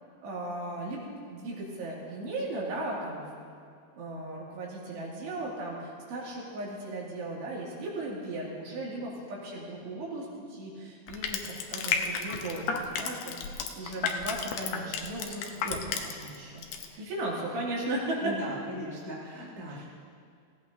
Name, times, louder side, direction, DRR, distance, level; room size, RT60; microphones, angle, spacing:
voice 1, 0.2-3.3 4.0-13.4 13.8-16.7 17.0-18.3 19.7-19.8, right 2 dB, 85° right, -4 dB, 4.5 m, -36 dB
Crushing, 11.1-16.4 16.6-16.8, left 6 dB, 80° left, 1.9 m, -32 dB
voice 2, 18.2-19.9, right 1 dB, 15° left, -5 dB, 0.9 m, -39 dB
16.5 x 16.5 x 2.7 m, 2.2 s
omnidirectional pair, 4.8 m